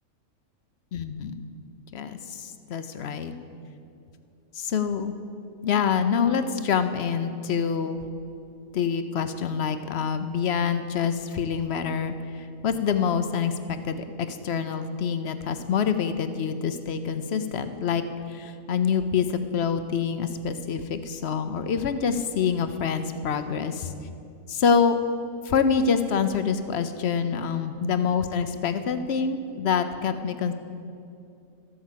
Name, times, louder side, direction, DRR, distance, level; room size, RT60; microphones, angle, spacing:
voice 1, 0.9-1.5 1.9-3.3 4.5-5.1 5.6-8.0 8.7-18.0 18.3-23.9 24.5-25.0 25.4-30.5, left 6 dB, 55° left, 10 dB, 0.8 m, -26 dB
13.0 x 8.5 x 7.4 m, 2.6 s
omnidirectional pair, 1.5 m